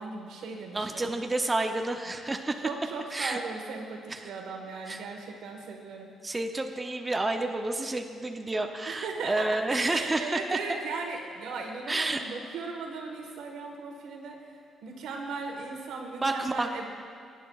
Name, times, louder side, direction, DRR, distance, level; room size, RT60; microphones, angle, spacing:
voice 1, 0.0-1.2 2.6-6.1 8.9-16.8, right 4 dB, 85° right, 2 dB, 1.3 m, -37 dB
voice 2, 0.7-2.7 3.1-3.4 4.1-4.3 4.9-5.0 6.2-10.8 11.9-12.2 16.2-16.8, right 2 dB, 20° right, 5 dB, 0.5 m, -30 dB
17.0 x 9.0 x 2.3 m, 2.4 s
cardioid pair, 90°, 0 cm